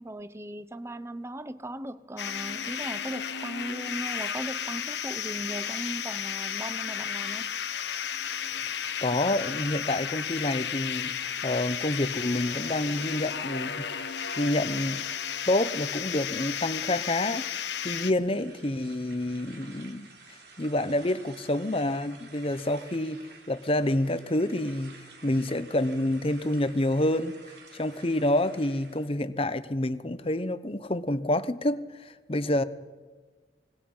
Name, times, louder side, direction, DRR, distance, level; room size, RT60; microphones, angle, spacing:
voice 1, 0.0-7.5, right 1 dB, 15° right, 0.8 m, -38 dB
sound 1, 2.2-18.1, left 8 dB, 70° left, 1.3 m, -33 dB
voice 2, 9.0-14.0 14.4-15.1 15.5-17.5 17.8-27.3 27.7-32.6, left 1 dB, 30° left, 0.9 m, -28 dB
sound 2, 18.1-29.1, right 3 dB, 65° right, 3.5 m, -51 dB
26.0 x 20.5 x 5.6 m
head